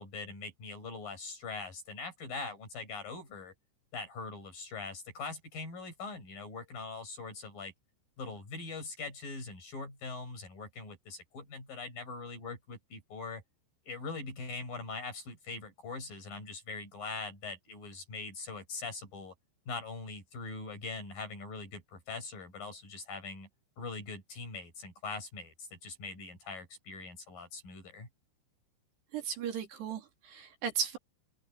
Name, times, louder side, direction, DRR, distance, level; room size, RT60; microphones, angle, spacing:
voice 1, 0.0-3.5 3.9-7.7 8.2-13.4 13.9-19.3 19.7-23.5 23.8-28.1, left 3 dB, 50° left, 8.1 m, -42 dB
voice 2, 29.1-31.0, right 7 dB, 65° right, 4.7 m, -36 dB
open air
omnidirectional pair, 5.4 m